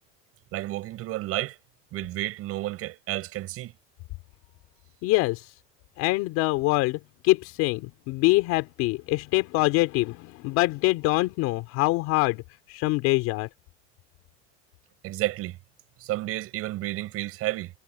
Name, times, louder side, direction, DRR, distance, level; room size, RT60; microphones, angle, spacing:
voice 1, 0.5-1.6 1.9-3.7 15.0-15.6 16.0-17.7, right 16 dB, 50° right, 7.3 m, -31 dB
voice 2, 5.0-5.5 6.0-12.4 12.7-13.5, left 21 dB, 65° left, 3.5 m, -24 dB
cardioid pair, 150°, 29 cm